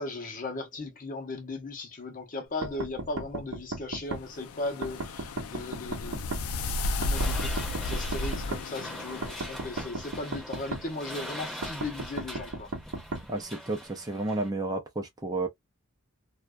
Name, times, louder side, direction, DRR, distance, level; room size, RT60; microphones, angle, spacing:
voice 1, 0.0-12.7, left 2 dB, 40° left, 0.7 m, -37 dB
sound 1, 2.6-4.2 4.8-6.4 7.0-8.6 9.2-10.8 11.6-13.2, right 2 dB, 75° right, 0.6 m, -35 dB
sound 2, 4.3-9.6, left 2 dB, 90° left, 0.4 m, -33 dB
sound 3, 7.1-14.5, equal, ahead, 0.8 m, -42 dB
voice 2, 13.3-15.5, right 2 dB, 20° right, 0.5 m, -31 dB
2.5 x 2.2 x 2.2 m
head